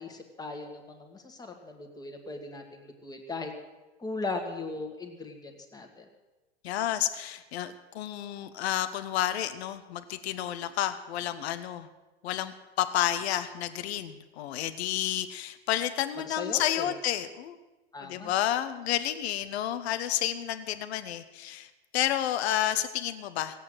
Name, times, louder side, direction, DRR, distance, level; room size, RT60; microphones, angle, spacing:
voice 1, 0.0-3.5 4.0-6.0 16.3-16.9 17.9-18.3, left 3 dB, 10° left, 3 dB, 1.9 m, -38 dB
voice 2, 6.6-11.9 12.2-17.5 18.0-23.6, left 12 dB, 70° left, 11 dB, 1.2 m, -30 dB
17.0 x 8.5 x 7.9 m, 1.1 s
supercardioid pair, 140°, 34 cm